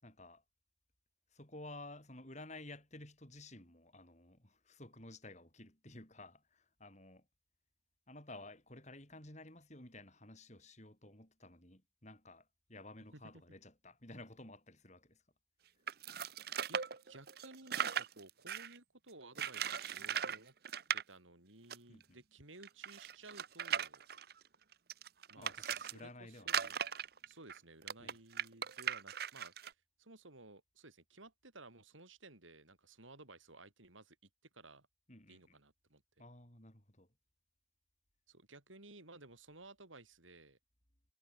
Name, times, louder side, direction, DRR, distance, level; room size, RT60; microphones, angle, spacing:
voice 1, 0.0-0.4 1.3-7.3 8.1-15.2 21.9-22.2 25.4-26.7 28.0-28.2 35.1-35.5 36.2-37.1, left 2 dB, 35° left, 6.3 m, -53 dB
sound 1, 15.9-18.8 19.4-20.4 20.6-21.0 21.7-21.8 22.0-22.1 22.6-25.9 26.4-29.7, right 8 dB, 50° right, 0.9 m, -38 dB
voice 2, 16.7-20.5 20.9-24.0 25.3-26.7 27.3-29.6 30.0-34.2 34.5-34.9 35.3-36.0 38.3-40.6, right 2 dB, 90° right, 6.7 m, -57 dB
head